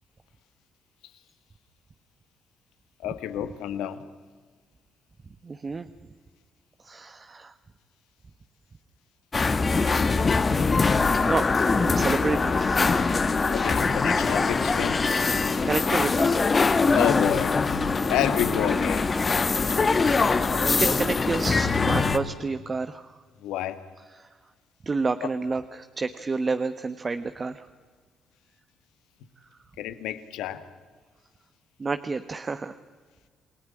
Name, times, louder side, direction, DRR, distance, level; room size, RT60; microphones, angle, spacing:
voice 1, 3.0-4.0 13.5-15.0 16.9-17.6 18.0-19.1 23.4-23.8 29.8-30.6, left 11 dB, 85° left, 11 dB, 1.7 m, -29 dB
voice 2, 5.4-5.9 6.8-7.5 11.2-11.5 11.7-13.0 15.6-16.5 20.8-23.2 24.1-24.3 24.8-27.7 31.8-32.8, right 4 dB, 35° right, 10 dB, 1.2 m, -30 dB
sound 1, 9.3-22.2, left 4 dB, 35° left, 1.8 m, -23 dB
28.5 x 18.0 x 9.9 m, 1.5 s
supercardioid pair, 75°, 0 cm